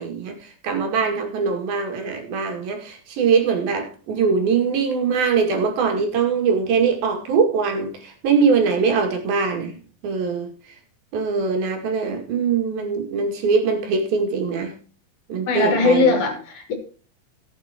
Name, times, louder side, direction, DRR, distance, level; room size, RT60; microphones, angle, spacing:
voice 1, 0.0-10.5 11.1-14.8 15.3-16.1, right 5 dB, 75° right, 4.0 m, -22 dB
voice 2, 15.5-16.7, left 3 dB, 60° left, 4.2 m, -19 dB
18.5 x 8.4 x 2.9 m
omnidirectional pair, 4.2 m